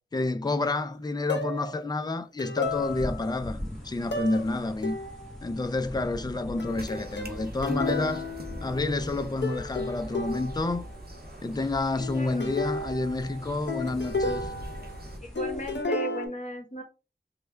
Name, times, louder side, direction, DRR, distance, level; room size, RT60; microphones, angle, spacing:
voice 1, 0.1-5.0 5.4-8.3 8.6-10.9 11.4-14.5, left 2 dB, 20° left, 0.4 m, -29 dB
sound 1, 1.3-1.8 2.4-3.4 4.1-4.5 4.8-5.4 6.6-9.2 9.4-10.8 12.0-15.1 15.3-16.3, left 3 dB, 80° left, 0.7 m, -33 dB
sound 2, 2.6-15.8, equal, ahead, 1.3 m, -42 dB
sound 3, 6.6-15.2, right 1 dB, 60° right, 0.8 m, -45 dB
voice 2, 12.1-12.5 15.2-16.8, right 1 dB, 45° left, 1.2 m, -36 dB
3.3 x 2.2 x 3.3 m
wide cardioid pair, 40°, 18 cm